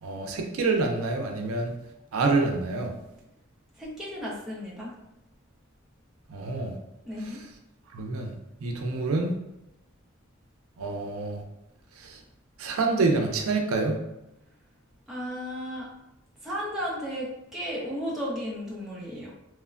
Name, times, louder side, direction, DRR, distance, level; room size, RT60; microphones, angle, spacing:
voice 1, 0.0-1.7 2.1-2.9 6.3-6.8 7.2-7.4 7.9-8.3 8.6-9.4 10.8-11.4 12.0-12.2 12.6-14.0, right 3 dB, 85° right, 2 dB, 0.4 m, -27 dB
voice 2, 3.8-4.9 7.1-7.4 15.1-15.9 16.4-19.3, equal, ahead, -7 dB, 0.5 m, -34 dB
3.0 x 2.1 x 2.3 m, 0.89 s
head